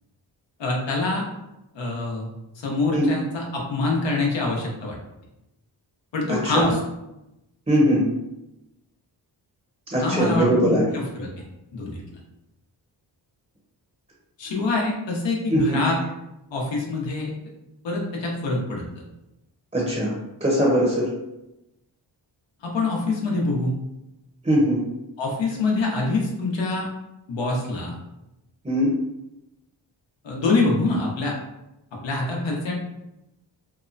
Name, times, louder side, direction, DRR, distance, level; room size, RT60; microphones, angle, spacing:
voice 1, 0.6-1.2 1.8-2.3 2.6-5.0 6.1-6.8 10.0-11.3 11.7-12.0 14.4-16.0 16.5-17.3 17.8-18.8 22.6-23.8 25.2-26.9 27.3-27.9 30.2-31.3 32.0-32.7, left 3 dB, 75° left, -1 dB, 0.8 m, -25 dB
voice 2, 6.3-6.7 7.7-8.0 9.9-10.9 15.5-15.8 19.7-20.1 20.4-21.1 24.4-24.8 28.6-28.9, equal, 15° right, -4 dB, 0.7 m, -20 dB
2.8 x 2.1 x 2.5 m, 0.91 s
cardioid pair, 70°, 44 cm